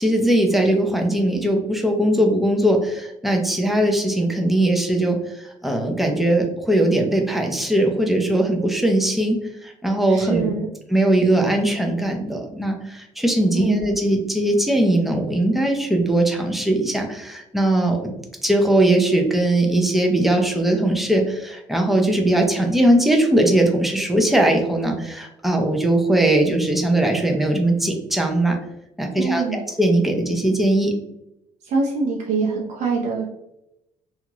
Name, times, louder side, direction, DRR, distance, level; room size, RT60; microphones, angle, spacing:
voice 1, 0.0-10.5 10.9-18.1 18.4-28.6 29.0-31.0, right 1 dB, ahead, 2 dB, 0.5 m, -20 dB
voice 2, 10.1-10.7 13.5-13.9 29.2-29.6 31.6-33.2, right 4 dB, 65° right, -2 dB, 0.6 m, -24 dB
2.8 x 2.4 x 2.9 m, 0.84 s
cardioid pair, 120°, 13 cm